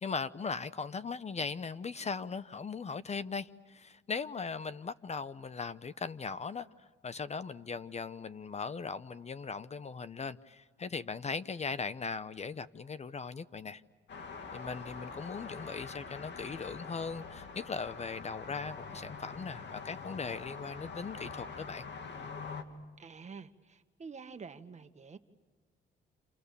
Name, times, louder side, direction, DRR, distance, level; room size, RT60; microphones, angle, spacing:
voice 1, 0.0-13.8 14.5-21.8, left 5 dB, 35° left, 0.8 m, -39 dB
sound 1, 14.1-22.6, left 4 dB, 65° left, 2.6 m, -44 dB
voice 2, 23.0-25.2, right 5 dB, 35° right, 1.7 m, -48 dB
30.0 x 29.0 x 6.9 m
cardioid pair, 90°, 20 cm